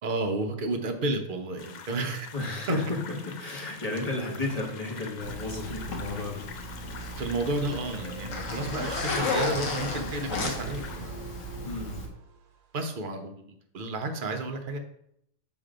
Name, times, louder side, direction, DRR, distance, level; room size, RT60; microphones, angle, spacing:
voice 1, 0.0-2.3 2.7-2.8 7.2-11.3 12.7-13.3 13.7-14.8, right 2 dB, 45° right, 5 dB, 0.9 m, -31 dB
sound 1, 1.6-11.0, left 6 dB, 60° left, 0.4 m, -46 dB
voice 2, 2.3-3.0 3.2-6.4 11.6-12.0, left 2 dB, 30° left, -2 dB, 1.5 m, -33 dB
Zipper (clothing), 5.2-12.1, left 2 dB, 80° left, 1.4 m, -34 dB
sound 2, 7.7-12.7, right 6 dB, 85° right, 1.0 m, -45 dB
6.1 x 3.2 x 5.0 m, 0.73 s
omnidirectional pair, 1.3 m